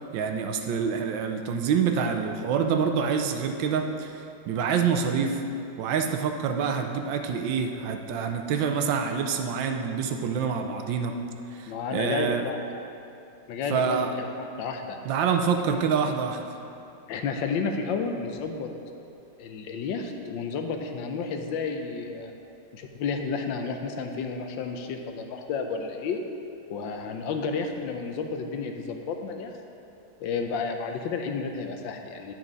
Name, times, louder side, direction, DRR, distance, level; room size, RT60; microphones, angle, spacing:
voice 1, 0.1-5.4 5.8-11.1 11.5-12.4 13.7-14.2 15.0-16.4, right 6 dB, 85° right, 5 dB, 1.4 m, -26 dB
voice 2, 11.7-12.6 13.5-15.0 17.1-18.7 19.4-22.3 22.7-26.2 26.7-29.6 30.2-32.3, left 5 dB, 90° left, 4 dB, 1.4 m, -31 dB
10.5 x 6.1 x 4.0 m, 2.7 s
omnidirectional pair, 2.0 m